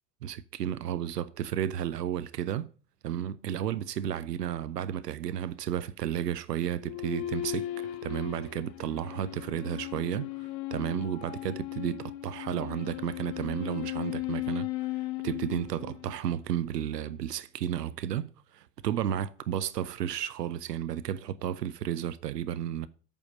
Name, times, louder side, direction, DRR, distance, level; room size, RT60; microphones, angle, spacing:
voice 1, 0.2-2.7 3.0-14.9 15.2-22.9, right 10 dB, 75° right, 0.7 m, -33 dB
sound 1, 6.8-16.4, left 16 dB, 55° left, 0.8 m, -37 dB
8.8 x 5.8 x 7.3 m
figure-of-eight pair, 65°, 49 cm